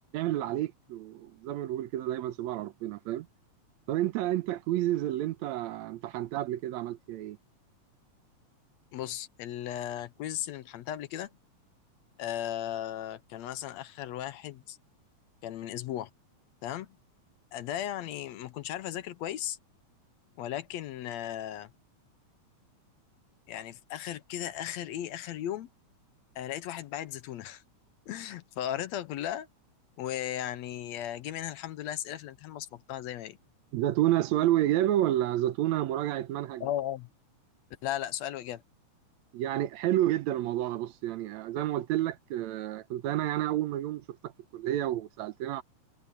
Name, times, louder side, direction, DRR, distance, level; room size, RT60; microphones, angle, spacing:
voice 1, 0.1-3.3 3.9-7.4 33.7-36.6 39.3-45.6, right 13 dB, 75° right, 1.9 m, -30 dB
voice 2, 8.9-11.3 12.2-14.8 15.4-16.1 16.6-17.0 17.5-19.6 20.4-21.7 23.5-25.7 26.4-27.6 28.1-29.5 30.0-33.4 36.6-37.1 37.8-38.6, left 11 dB, 75° left, 1.9 m, -36 dB
omnidirectional pair, 3.4 m